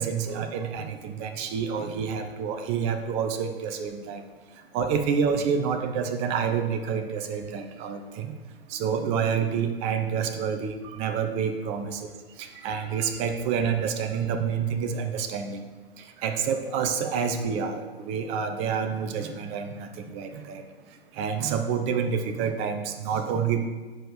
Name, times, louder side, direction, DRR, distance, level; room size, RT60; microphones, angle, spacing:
voice 1, 0.0-4.2 4.7-8.3 8.7-12.0 12.4-15.6 16.0-20.6 21.1-23.7, right 6 dB, 20° right, 6 dB, 0.6 m, -28 dB
7.6 x 4.9 x 6.4 m, 1.3 s
figure-of-eight pair, 115°, 31 cm